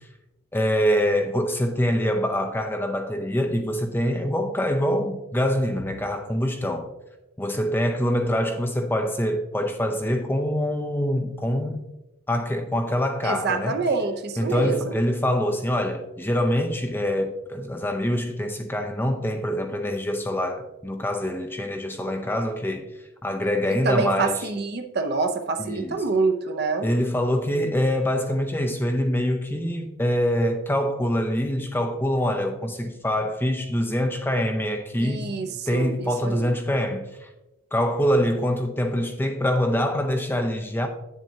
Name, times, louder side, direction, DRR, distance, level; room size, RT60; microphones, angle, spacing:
voice 1, 0.5-6.9 7.4-11.8 12.3-13.8 14.4-22.8 23.2-24.5 25.6-26.0 26.8-35.3 35.7-37.3 37.7-40.9, equal, 10° left, 0.5 m, -25 dB
voice 2, 13.2-15.0 23.8-26.9 35.0-36.5, right 4 dB, 50° right, 0.7 m, -26 dB
8.8 x 7.3 x 2.8 m
head